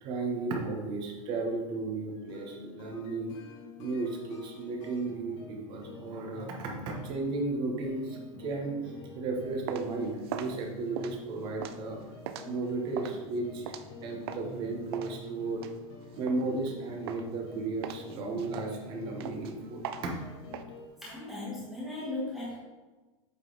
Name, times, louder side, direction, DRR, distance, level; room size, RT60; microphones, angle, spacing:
voice 1, 0.0-3.3 3.8-12.0 12.4-13.7 14.0-15.7 16.2-20.1, right 3 dB, 25° right, 1 dB, 1.1 m, -34 dB
sound 1, 2.2-20.9, left 3 dB, 55° left, 1.6 m, -47 dB
Walking in heels, 9.3-14.6 14.9-16.7 17.1-17.5 17.8-20.6, right 9 dB, 45° right, 0.4 m, -41 dB
voice 2, 21.0-22.6, left 2 dB, ahead, -9 dB, 1.2 m, -37 dB
8.3 x 4.0 x 3.9 m, 1.2 s
supercardioid pair, 170°, 18 cm